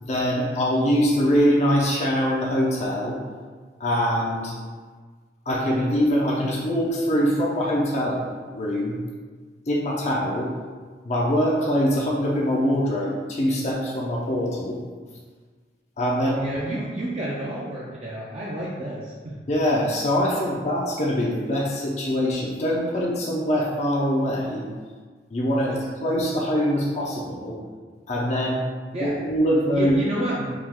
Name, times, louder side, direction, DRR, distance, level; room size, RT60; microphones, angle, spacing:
voice 1, 0.0-3.2 3.8-4.6 5.5-8.2 8.5-9.0 9.7-10.5 11.0-14.8 16.0-16.4 19.5-24.6 25.3-27.6 28.1-28.6 29.0-30.0, equal, 40° left, -3 dB, 0.5 m, -23 dB
voice 2, 16.2-19.3 25.6-25.8 28.9-29.2 29.7-30.5, right 1 dB, 35° right, -6 dB, 0.5 m, -30 dB
4.9 x 2.3 x 3.6 m, 1.5 s
head